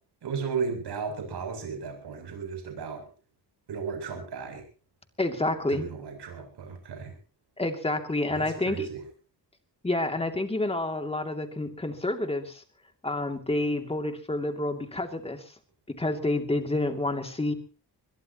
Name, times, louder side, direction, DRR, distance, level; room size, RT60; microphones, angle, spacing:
voice 1, 0.2-3.0 3.7-4.6 5.7-7.2 8.3-9.0, right 5 dB, 75° right, 4 dB, 8.0 m, -35 dB
voice 2, 5.2-5.8 7.6-8.9 9.8-12.6 13.0-15.5 15.9-17.5, left 2 dB, 15° left, 5 dB, 2.6 m, -29 dB
22.5 x 21.5 x 3.0 m, 0.38 s
wide cardioid pair, 145°, 41 cm